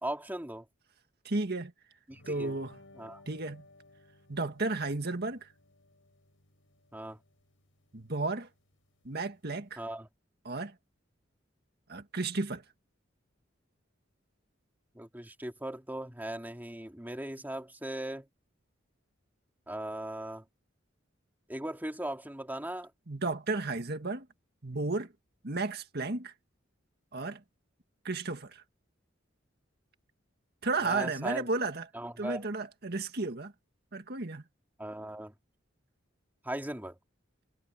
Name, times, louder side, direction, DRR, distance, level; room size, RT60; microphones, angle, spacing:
voice 1, 0.0-0.7 2.1-2.6 2.9-3.2 6.9-7.2 9.8-10.1 14.9-18.3 19.7-20.4 21.5-22.9 30.8-31.5 31.9-32.4 34.8-35.3 36.4-37.0, right 1 dB, 10° right, 2.5 m, -38 dB
voice 2, 1.2-1.7 2.3-2.8 3.3-3.6 4.3-5.5 7.9-8.5 9.1-9.8 10.5-10.7 11.9-12.6 23.1-24.3 24.6-25.1 25.4-26.3 27.1-27.4 28.0-28.6 30.6-31.9 32.2-33.5 33.9-34.4, right 3 dB, 55° right, 1.9 m, -33 dB
sound 1, 2.1-9.8, left 2 dB, 90° left, 5.4 m, -59 dB
head